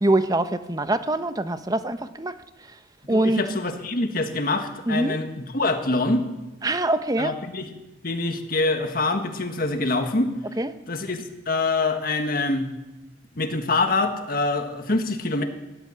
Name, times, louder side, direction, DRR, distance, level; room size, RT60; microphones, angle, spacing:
voice 1, 0.0-2.3 3.1-3.4 4.9-5.2 6.6-7.3 10.6-10.7, right 1 dB, 20° right, 11 dB, 0.8 m, -23 dB
voice 2, 3.1-6.3 7.2-7.7 8.0-10.3 10.9-11.2 11.5-12.7 13.4-15.4, left 2 dB, 50° left, 6 dB, 1.6 m, -25 dB
16.0 x 11.5 x 7.2 m, 1.0 s
head